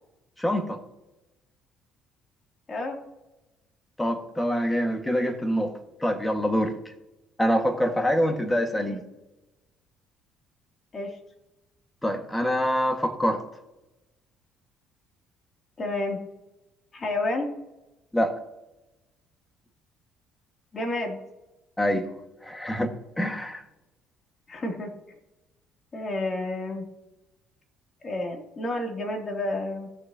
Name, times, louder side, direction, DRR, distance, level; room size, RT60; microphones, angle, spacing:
voice 1, 0.4-0.8 4.0-5.7 6.0-6.7 7.4-9.0 12.0-13.4 18.1-18.3 21.8-22.1 22.4-22.9 23.2-23.6, equal, 10° left, 5 dB, 1.9 m, -25 dB
voice 2, 15.8-16.2 16.9-17.5 20.7-21.2 24.5-24.9 25.9-26.9 28.0-29.9, left 2 dB, 35° left, 1 dB, 3.0 m, -30 dB
17.0 x 6.6 x 2.9 m, 1.0 s
supercardioid pair, 70°, 0 cm